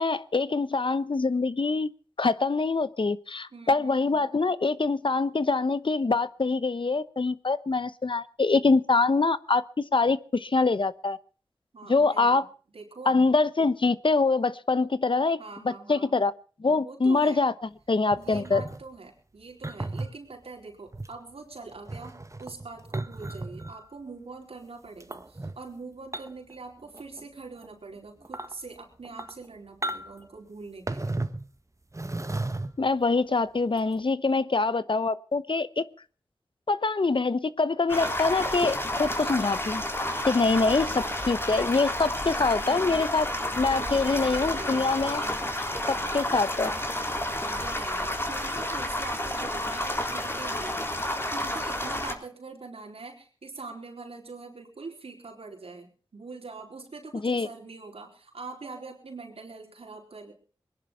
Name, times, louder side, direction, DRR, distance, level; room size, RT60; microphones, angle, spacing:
voice 1, 0.0-1.9 2.2-9.6 9.9-11.2 11.9-12.5 13.1-15.4 15.6-16.3 16.6-17.5 17.9-18.6 32.8-35.8 36.7-39.8 40.2-43.3 43.6-45.2 45.9-46.7 57.2-57.5, left 3 dB, 60° left, 16 dB, 1.0 m, -24 dB
voice 2, 3.5-4.3 11.7-12.4 12.7-13.1 15.4-16.1 16.7-17.5 18.2-31.2 42.3-43.0 43.7-45.3 45.7-46.4 47.3-50.8 51.2-60.3, right 3 dB, 85° right, 1 dB, 4.4 m, -44 dB
sound 1, 18.1-18.8 19.6-20.1 20.9-21.1 21.7-23.8 25.0-25.5 26.1-26.5 26.8-27.2 27.6-27.7 28.2-28.5 29.0-29.4 29.8-30.2 30.9-31.5 31.9-32.9 33.8-33.9, right 2 dB, 30° right, 1.5 m, -34 dB
sound 2, 37.9-52.1, left 1 dB, 25° left, 3.6 m, -30 dB
21.5 x 11.0 x 5.8 m, 0.40 s
cardioid pair, 45°, 10 cm